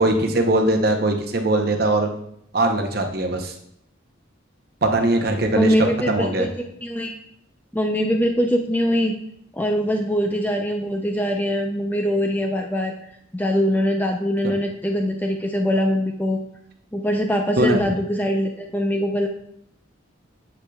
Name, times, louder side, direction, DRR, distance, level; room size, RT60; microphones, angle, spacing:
voice 1, 0.0-2.1 2.5-3.5 4.8-5.7 6.1-6.5 14.4-14.5 17.6-17.8, right 2 dB, 50° right, 4 dB, 0.8 m, -20 dB
voice 2, 5.5-6.5 6.8-7.2 7.7-9.1 9.5-12.9 13.3-16.4 16.9-19.3, equal, 10° left, 3 dB, 0.4 m, -22 dB
8.3 x 7.3 x 2.3 m, 0.72 s
head